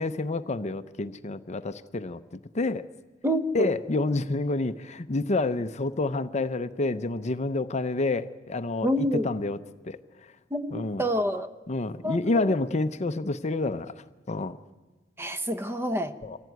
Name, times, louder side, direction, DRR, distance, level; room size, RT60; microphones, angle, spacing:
voice 1, 0.0-2.8 3.5-9.6 9.8-10.3 10.7-11.1 11.7-14.6 16.2-16.4, left 2 dB, 35° left, 11 dB, 0.6 m, -29 dB
voice 2, 3.2-3.7 8.8-9.3 10.5-11.5 12.0-12.6 15.2-16.1, equal, 10° right, 10 dB, 0.8 m, -28 dB
24.0 x 15.5 x 9.3 m, 1.3 s
head